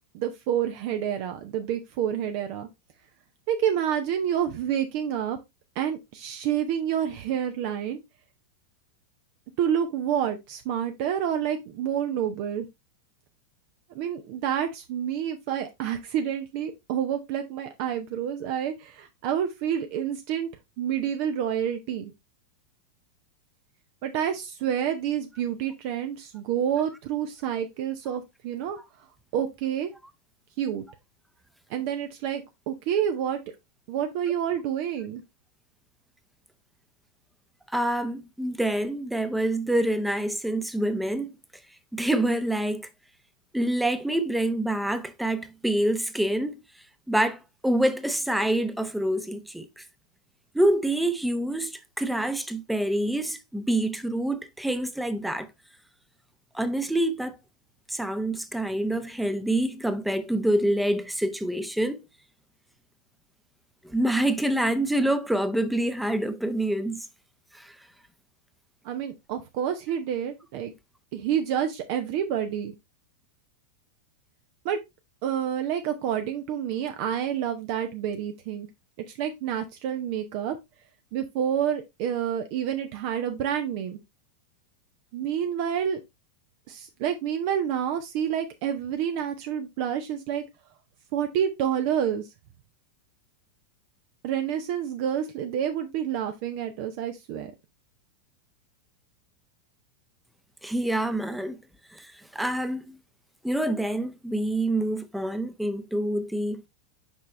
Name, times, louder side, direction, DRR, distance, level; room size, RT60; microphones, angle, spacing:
voice 1, 0.1-2.7 3.5-5.4 5.8-8.0 9.6-12.7 13.9-20.5 20.8-22.1 24.0-28.8 29.3-29.9 30.6-30.8 31.7-33.4 33.9-35.2 68.8-70.7 71.1-72.7 74.6-74.8 75.2-78.7 79.1-80.6 81.1-84.0 85.1-86.0 86.7-90.4 91.1-92.2 94.2-97.5, right 9 dB, 45° right, 0.7 m, -28 dB
voice 2, 37.7-41.3 41.9-42.9 43.5-46.6 47.1-49.8 50.5-55.5 56.5-57.4 57.9-62.0 63.8-67.0 67.5-67.7 100.6-101.6 101.9-103.0 103.4-106.6, right 1 dB, 5° right, 0.8 m, -26 dB
6.3 x 5.5 x 3.2 m
figure-of-eight pair, 90°, 0 cm